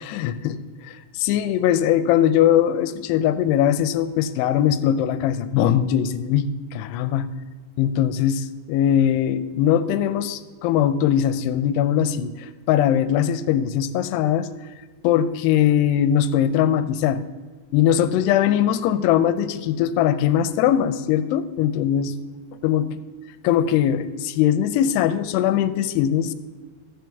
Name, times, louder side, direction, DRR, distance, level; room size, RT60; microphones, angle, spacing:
voice 1, 0.1-7.3 7.8-14.5 15.0-17.2 17.7-22.2 22.6-22.9 23.4-26.3, left 10 dB, 85° left, 12 dB, 2.6 m, -21 dB
13.5 x 7.6 x 3.5 m, 1.4 s
omnidirectional pair, 4.8 m